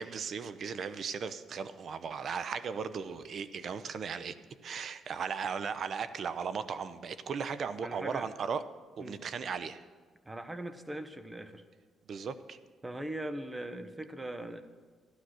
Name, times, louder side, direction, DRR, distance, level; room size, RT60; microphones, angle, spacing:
voice 1, 0.0-4.3 4.6-8.6 9.0-9.8 12.1-12.6, right 6 dB, 55° right, 13 dB, 0.8 m, -36 dB
voice 2, 7.8-8.3 9.0-9.2 10.2-11.6 12.8-14.6, right 1 dB, 15° right, 10 dB, 1.1 m, -40 dB
13.5 x 11.5 x 6.3 m, 1.5 s
cardioid pair, 90°, 0 cm